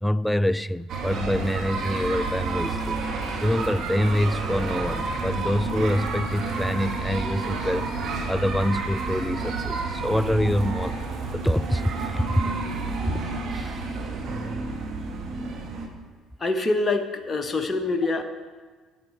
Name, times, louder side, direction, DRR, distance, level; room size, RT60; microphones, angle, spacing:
voice 1, 0.0-3.0 3.4-7.9 8.3-11.0 11.3-12.4 13.5-13.9, left 1 dB, 5° left, 0.3 m, -26 dB
sound 1, 0.9-15.9, right 3 dB, 55° right, 1.6 m, -30 dB
voice 2, 16.4-18.2, left 3 dB, 30° left, 1.0 m, -25 dB
12.5 x 9.9 x 4.3 m
hypercardioid pair, 55°, 0 cm